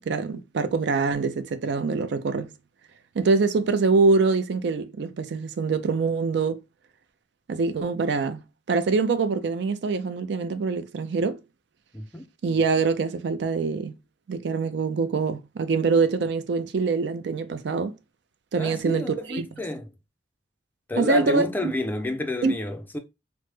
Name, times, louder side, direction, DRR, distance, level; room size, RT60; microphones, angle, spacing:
voice 1, 0.1-2.5 3.1-6.6 7.5-8.4 8.7-11.4 12.4-13.9 14.3-18.0 18.5-19.5 21.0-21.7 22.4-22.5, right 4 dB, 65° right, 0.4 m, -24 dB
voice 2, 11.9-12.3 18.6-19.9 20.9-23.0, left 1 dB, 10° left, 0.4 m, -30 dB
3.2 x 2.0 x 3.1 m
head